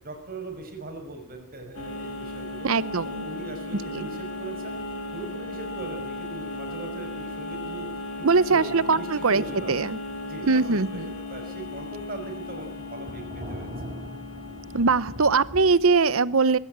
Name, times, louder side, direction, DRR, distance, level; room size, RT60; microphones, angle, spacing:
voice 1, 0.0-2.7 3.0-4.8 5.1-7.9 8.5-9.7 10.2-11.0 11.3-13.7, right 2 dB, 40° right, 4 dB, 6.1 m, -39 dB
sound 1, 1.7-15.9, left 2 dB, 75° left, 4.7 m, -36 dB
voice 2, 2.6-3.2 3.9-4.1 8.2-9.4 9.7-10.0 10.5-11.1 14.7-16.6, right 4 dB, 65° right, 17 dB, 0.9 m, -21 dB
Thunder, 10.1-10.2 10.4-15.6, equal, 20° right, 4.4 m, -42 dB
20.5 x 17.5 x 9.0 m, 0.65 s
head